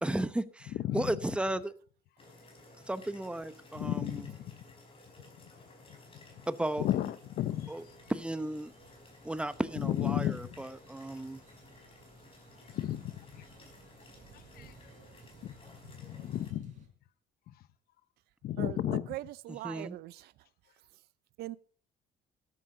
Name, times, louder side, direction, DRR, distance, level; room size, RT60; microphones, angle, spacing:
voice 1, 0.0-1.7 2.9-4.2 6.5-6.9 7.7-7.8 8.1-8.7 9.2-11.4 19.6-19.9, right 1 dB, 5° right, 0.8 m, -34 dB
voice 2, 0.8-1.2 3.7-4.6 6.8-7.7 9.8-10.5 12.7-13.3 14.5-14.7 15.4-15.5 15.9-16.8 18.4-19.0, left 12 dB, 65° left, 0.8 m, -33 dB
sound 1, 2.2-16.5, left 2 dB, 35° left, 5.1 m, -56 dB
sound 2, 7.5-16.9, right 6 dB, 50° right, 4.4 m, -59 dB
voice 3, 18.6-20.3 21.4-21.6, right 15 dB, 70° right, 0.5 m, -41 dB
13.5 x 11.0 x 3.8 m
cardioid pair, 110°, 17 cm